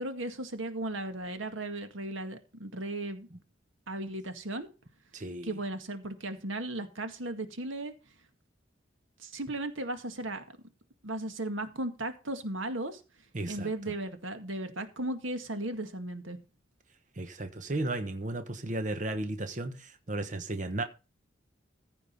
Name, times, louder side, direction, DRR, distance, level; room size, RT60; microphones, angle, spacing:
voice 1, 0.0-3.3 3.9-4.7 5.4-7.9 9.2-10.4 11.0-13.0 13.5-16.4, right 1 dB, 90° right, 2.0 m, -36 dB
voice 2, 5.1-5.6 13.3-13.7 17.2-20.8, right 2 dB, 40° right, 1.2 m, -34 dB
15.0 x 5.3 x 5.5 m
head